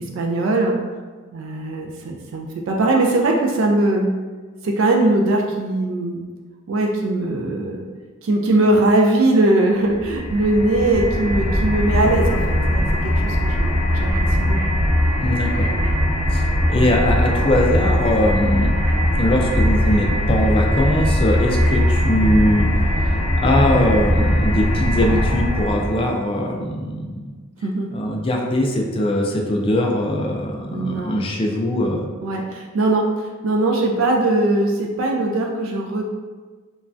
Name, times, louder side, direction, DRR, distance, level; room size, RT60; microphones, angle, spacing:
voice 1, 0.2-0.8 1.3-4.1 4.6-6.2 6.7-7.9 8.2-12.8 13.2-14.1 14.4-14.6 27.6-27.9 30.7-31.2 32.2-36.0, right 2 dB, 85° right, 1 dB, 0.3 m, -20 dB
sound 1, 9.9-26.1, equal, 45° right, 0.8 m, -20 dB
voice 2, 15.2-15.8 16.3-18.7 19.2-27.3 27.9-32.0, left 1 dB, 25° left, 0 dB, 0.3 m, -21 dB
3.1 x 2.3 x 2.5 m, 1.4 s
head